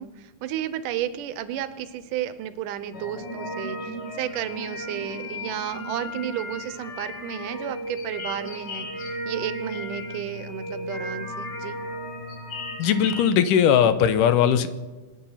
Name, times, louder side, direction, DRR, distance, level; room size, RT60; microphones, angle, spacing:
voice 1, 0.0-11.8, right 10 dB, 80° right, 13 dB, 2.4 m, -32 dB
sound 1, 2.9-13.2, equal, 40° left, 1.7 m, -35 dB
voice 2, 12.8-14.7, left 8 dB, 85° left, 11 dB, 2.5 m, -19 dB
26.5 x 9.0 x 5.7 m, 1.2 s
omnidirectional pair, 3.7 m